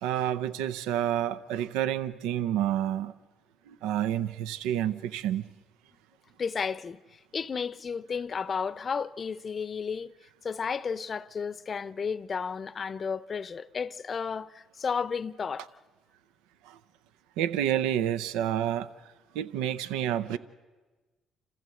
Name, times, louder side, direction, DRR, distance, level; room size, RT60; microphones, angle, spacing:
voice 1, 0.0-3.1 3.7-5.4 16.7-16.8 17.4-18.9 19.3-20.4, right 11 dB, 85° right, 0.6 m, -29 dB
voice 2, 6.4-10.1 10.4-15.7, left 6 dB, 45° left, 0.7 m, -33 dB
27.0 x 15.0 x 7.8 m
supercardioid pair, 65°, 0 cm